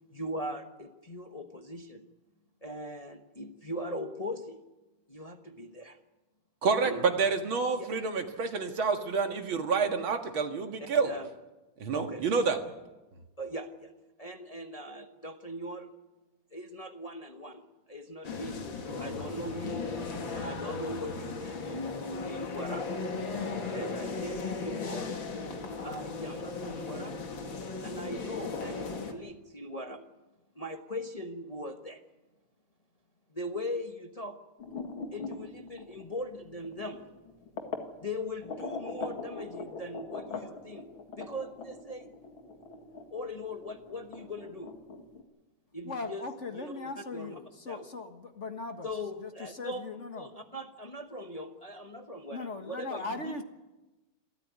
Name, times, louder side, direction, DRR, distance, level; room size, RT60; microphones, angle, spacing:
voice 1, 0.1-2.1 2.6-4.7 5.1-6.0 6.8-7.1 7.8-7.9 9.7-9.9 10.8-11.3 11.9-12.2 13.4-15.9 16.5-19.9 20.3-22.9 23.7-25.2 25.8-27.2 27.8-30.1 30.5-32.0 33.3-34.4 35.1-37.1 38.0-42.1 43.1-44.8 45.7-46.2 46.5-47.4 47.7-47.9 48.8-49.9 50.2-53.4, left 1 dB, 25° left, 5 dB, 1.0 m, -40 dB
voice 2, 6.6-11.1 11.8-12.6, right 5 dB, 85° right, 5 dB, 2.6 m, -28 dB
sound 1, 18.2-29.1, left 4 dB, 70° left, 2.8 m, -36 dB
sound 2, 34.6-37.9 38.4-45.2, left 4 dB, 85° left, 2.9 m, -41 dB
voice 3, 45.8-48.9 49.2-50.3 52.3-53.4, left 3 dB, 40° left, 6 dB, 1.6 m, -39 dB
27.5 x 13.5 x 9.5 m, 1.1 s
omnidirectional pair, 2.2 m